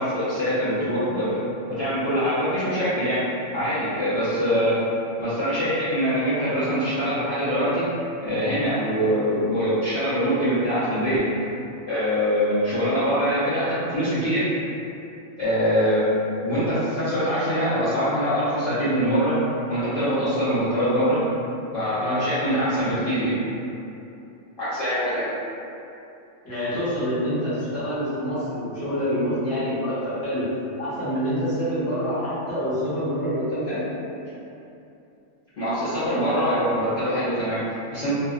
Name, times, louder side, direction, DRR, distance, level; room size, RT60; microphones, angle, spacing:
voice 1, 0.0-1.4 1.7-3.2 3.5-4.8 5.2-7.9 8.2-11.2 11.9-14.5 15.4-16.0 16.4-19.4 19.7-21.2 21.7-23.4 24.6-25.3 35.6-38.1, equal, 50° left, -15 dB, 0.7 m, -23 dB
voice 2, 26.4-30.4 30.8-33.8, equal, 15° left, -13 dB, 0.8 m, -26 dB
2.6 x 2.2 x 2.3 m, 2.8 s
omnidirectional pair, 1.3 m